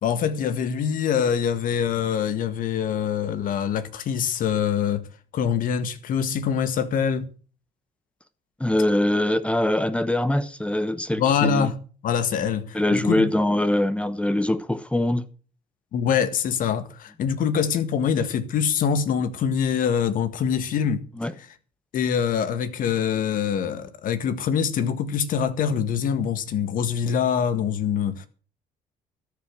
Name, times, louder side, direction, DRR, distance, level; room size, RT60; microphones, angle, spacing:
voice 1, 0.0-5.0 5.3-7.3 11.2-11.8 12.0-13.3 15.9-21.0 21.4-21.5 21.9-28.3, left 7 dB, 65° left, 1.8 m, -24 dB
voice 2, 8.6-11.7 12.7-15.2 21.2-21.3, left 1 dB, 5° left, 1.0 m, -23 dB
13.5 x 7.3 x 7.6 m
cardioid pair, 100°, 16 cm